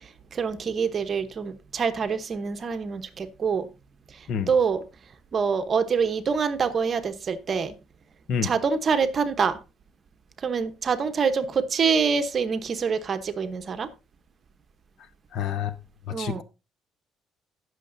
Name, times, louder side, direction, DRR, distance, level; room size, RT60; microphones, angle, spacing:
voice 1, 0.3-3.7 4.5-4.8 5.3-7.7 8.4-9.6 10.4-13.9 16.1-16.4, right 5 dB, 40° right, 1.0 m, -25 dB
voice 2, 15.3-15.7 16.2-16.4, left 7 dB, 60° left, 1.0 m, -28 dB
17.5 x 6.6 x 2.7 m
cardioid pair, 115°, 0 cm